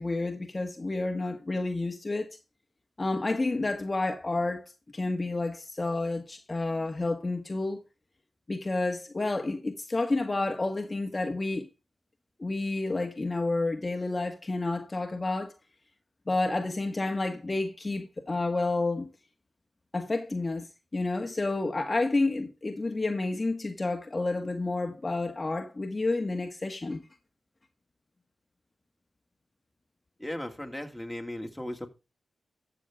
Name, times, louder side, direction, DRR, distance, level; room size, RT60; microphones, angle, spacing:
voice 1, 0.0-2.3 3.0-4.6 4.9-7.8 8.5-11.7 12.4-15.5 16.3-19.1 19.9-27.0, left 2 dB, 35° left, 1.6 m, -30 dB
voice 2, 30.2-31.9, left 1 dB, 5° left, 2.4 m, -36 dB
13.0 x 6.7 x 3.6 m
cardioid pair, 60°, 0 cm